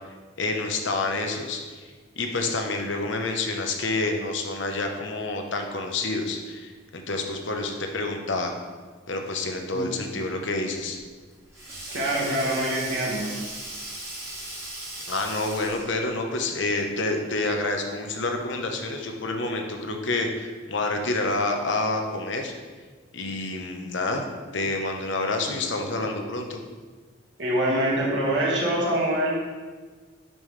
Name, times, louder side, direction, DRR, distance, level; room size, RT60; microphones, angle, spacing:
voice 1, 0.4-1.9 2.2-8.5 9.1-11.0 15.1-22.5 23.1-24.2 24.5-26.6, left 2 dB, 70° left, 3 dB, 1.0 m, -28 dB
Sink (filling or washing), 10.9-16.0, right 1 dB, 15° right, 1.8 m, -37 dB
voice 2, 11.9-13.3 27.4-29.4, right 1 dB, 65° right, -5 dB, 1.9 m, -25 dB
10.5 x 5.5 x 3.3 m, 1.4 s
head